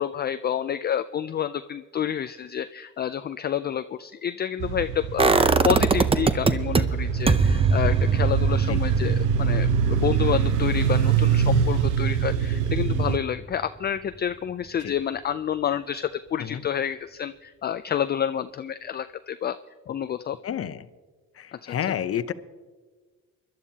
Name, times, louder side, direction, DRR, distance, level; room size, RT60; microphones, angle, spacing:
voice 1, 0.0-5.3 5.6-19.6 19.9-20.4 21.5-21.8, left 9 dB, 35° left, 10 dB, 0.4 m, -29 dB
sound 1, 4.6-13.2, right 7 dB, 85° right, 0.9 m, -24 dB
sound 2, 5.2-6.8 7.3-13.1 13.4-13.5, right 4 dB, 20° right, 0.6 m, -24 dB
voice 2, 20.4-20.9 21.4-22.3, left 9 dB, 50° left, 13 dB, 0.7 m, -30 dB
24.5 x 12.0 x 2.8 m, 1.4 s
cardioid pair, 90°, 30 cm